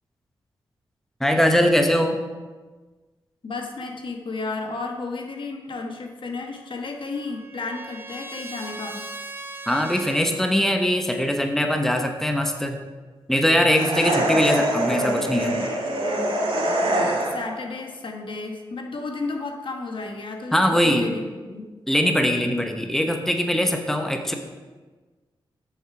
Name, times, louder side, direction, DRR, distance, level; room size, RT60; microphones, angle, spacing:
voice 1, 1.2-2.2 9.7-12.8 13.3-15.7 20.5-21.1 21.9-24.3, equal, 5° left, 5 dB, 1.0 m, -21 dB
voice 2, 3.4-9.0 17.3-21.7, left 3 dB, 55° left, 2 dB, 1.2 m, -33 dB
Trumpet, 6.5-10.4, right 2 dB, 20° right, 1.0 m, -39 dB
sound 1, 13.7-17.6, right 1 dB, 70° right, 1.8 m, -24 dB
8.6 x 6.7 x 4.8 m, 1.3 s
cardioid pair, 50°, 10 cm